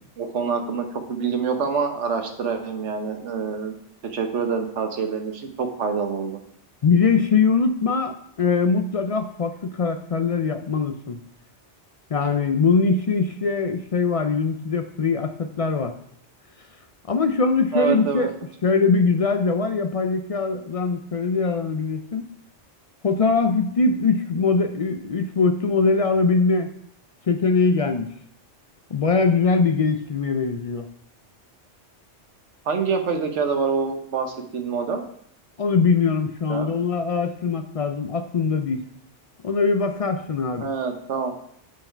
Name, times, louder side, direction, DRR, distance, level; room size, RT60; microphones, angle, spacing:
voice 1, 0.2-3.8 4.0-6.4 17.7-18.3 32.6-35.0 36.5-36.7 40.6-41.3, right 5 dB, 80° right, 6 dB, 1.3 m, -26 dB
voice 2, 6.8-11.2 12.1-16.0 17.1-18.3 18.6-22.3 23.0-26.7 27.3-28.1 28.9-30.9 35.6-38.8 39.4-40.7, left 4 dB, 60° left, 7 dB, 0.3 m, -22 dB
9.2 x 4.7 x 4.4 m, 0.69 s
omnidirectional pair, 1.2 m